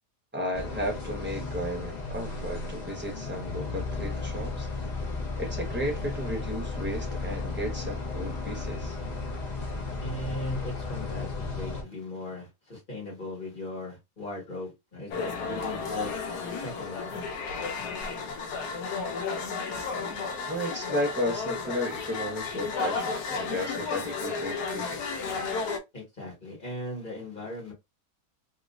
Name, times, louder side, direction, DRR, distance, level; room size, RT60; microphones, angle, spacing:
voice 1, 0.3-4.7 5.4-9.0 20.5-25.0, equal, 10° right, 0.9 m, -34 dB
sound 1, 0.5-11.8, left 3 dB, 55° left, 0.4 m, -34 dB
voice 2, 9.7-16.1 16.5-17.1 25.9-27.7, left 1 dB, 30° left, 1.8 m, -38 dB
sound 2, 15.1-25.8, left 4 dB, 85° left, 1.2 m, -33 dB
3.1 x 2.9 x 2.5 m
omnidirectional pair, 1.7 m